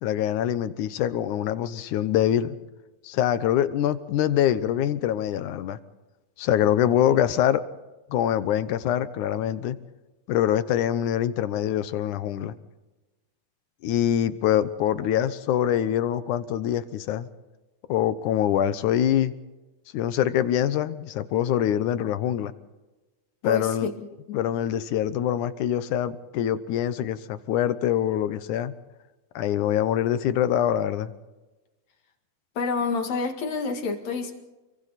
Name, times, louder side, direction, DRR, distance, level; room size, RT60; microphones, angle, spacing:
voice 1, 0.0-2.6 3.0-5.8 6.4-7.6 8.1-9.8 10.3-12.5 13.8-17.3 17.9-19.3 19.9-22.5 23.4-23.9 24.3-28.7 29.4-31.1, left 11 dB, 80° left, 13 dB, 2.4 m, -24 dB
voice 2, 23.4-24.4 32.6-34.4, left 4 dB, 65° left, 5 dB, 3.2 m, -29 dB
28.5 x 23.5 x 4.2 m, 1.1 s
omnidirectional pair, 3.5 m